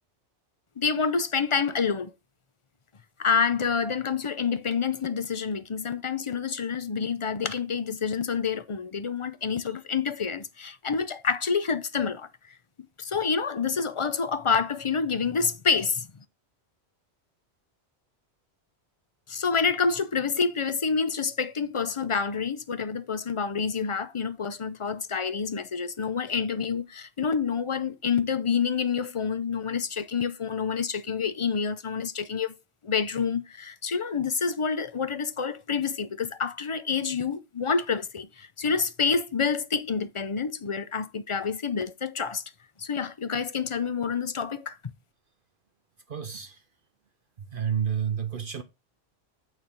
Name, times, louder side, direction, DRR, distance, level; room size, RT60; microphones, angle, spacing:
voice 1, 0.8-2.1 3.2-12.5 13.0-16.1 19.3-32.6 32.8-42.4 42.8-44.9, left 5 dB, 35° left, 0.6 m, -28 dB
voice 2, 46.1-46.6 47.4-48.6, right 8 dB, 55° right, 0.9 m, -30 dB
9.1 x 3.5 x 5.9 m
omnidirectional pair, 1.1 m